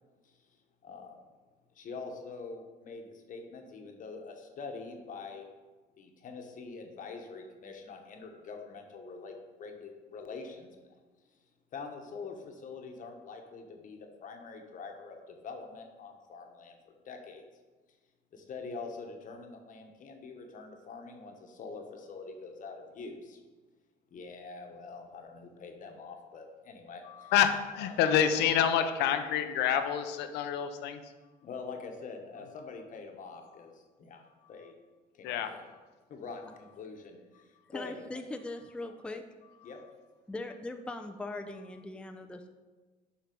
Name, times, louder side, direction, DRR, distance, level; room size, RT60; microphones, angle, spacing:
voice 1, 0.8-1.2 1.7-5.5 6.0-10.9 11.7-17.4 18.3-23.4 24.1-27.3 27.8-28.0 31.4-34.2 34.5-34.7 35.1-35.6 36.1-38.2 38.8-38.9 39.6-39.8, left 4 dB, 50° left, 3 dB, 1.1 m, -45 dB
voice 2, 27.1-31.0 35.2-35.5, left 9 dB, 90° left, 9 dB, 0.7 m, -27 dB
voice 3, 37.7-39.2 40.3-42.5, left 2 dB, 5° left, 5 dB, 0.5 m, -40 dB
7.5 x 4.6 x 5.3 m, 1.3 s
cardioid pair, 110°, 17 cm